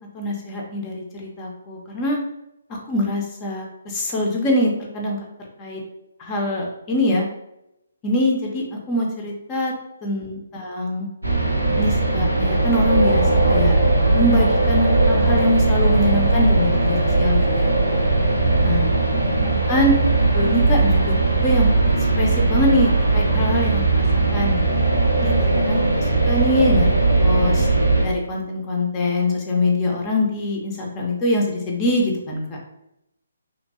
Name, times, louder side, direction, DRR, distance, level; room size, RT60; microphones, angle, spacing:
voice 1, 0.1-2.2 2.9-5.2 5.6-5.8 6.2-7.2 8.0-9.7 10.0-11.1 11.7-13.7 14.1-18.0 18.6-18.9 19.7-19.9 20.3-21.1 21.4-21.7 22.2-24.0 24.3-24.8 25.1-27.7 28.0-32.4, left 1 dB, 20° left, -1 dB, 0.5 m, -23 dB
sound 1, 11.2-28.0, right 2 dB, 85° right, 0.7 m, -18 dB
2.9 x 2.6 x 2.6 m, 0.84 s
figure-of-eight pair, 135°, 0 cm